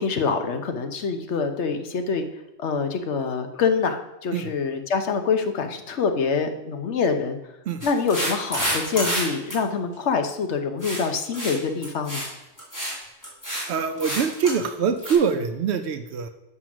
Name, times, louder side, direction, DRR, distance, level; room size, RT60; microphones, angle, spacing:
voice 1, 0.0-2.3 2.6-7.4 7.8-12.2, left 5 dB, 85° left, 7 dB, 1.2 m, -25 dB
sound 1, 7.8-9.2 9.5-9.6 10.8-11.1 11.3-11.6 11.8-12.3 12.6-13.0 13.2-13.6 14.0-14.6 15.0-15.1, equal, 15° left, 2.9 m, -28 dB
voice 2, 13.7-16.3, right 6 dB, 75° right, 9 dB, 0.9 m, -24 dB
7.5 x 6.2 x 6.0 m, 0.94 s
omnidirectional pair, 1.1 m